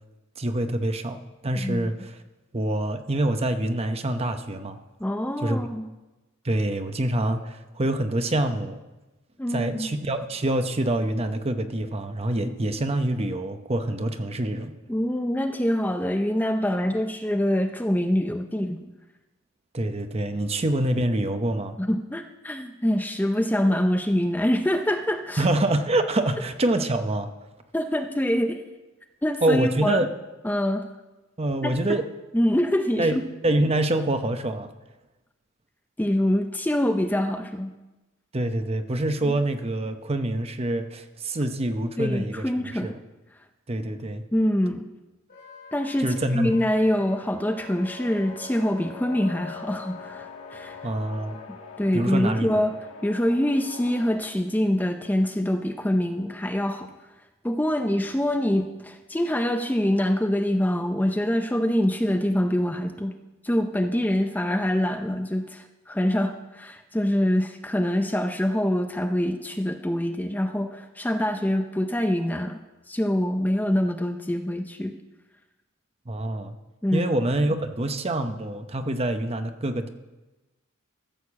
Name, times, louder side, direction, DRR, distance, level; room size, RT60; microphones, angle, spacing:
voice 1, 0.4-2.2 2.5-4.8 5.4-5.6 6.4-8.8 9.5-14.7 19.7-21.8 25.4-27.3 29.4-30.1 31.4-32.0 33.0-34.7 38.3-42.4 42.8-43.0 43.7-44.2 46.0-46.5 50.8-51.4 51.9-52.6 76.1-76.6 76.9-79.9, right 1 dB, 30° right, 8 dB, 0.8 m, -26 dB
voice 2, 1.6-1.9 5.0-5.9 9.4-9.9 14.9-18.9 21.8-25.4 27.7-28.6 29.2-30.0 30.4-30.8 31.6-32.0 32.3-33.2 36.0-37.7 39.3-39.4 42.0-42.9 44.3-44.9 45.7-50.8 51.5-52.7 53.0-56.9 57.4-63.2 63.4-72.6 72.9-74.9 76.8-77.1, left 1 dB, 10° left, 6 dB, 0.5 m, -25 dB
Wind instrument woodwind instrument, 45.3-51.5, equal, 40° left, 2.2 m, -46 dB
sound 1, 47.6-54.1, left 6 dB, 90° left, 1.5 m, -43 dB
14.0 x 6.6 x 7.3 m, 1.1 s
head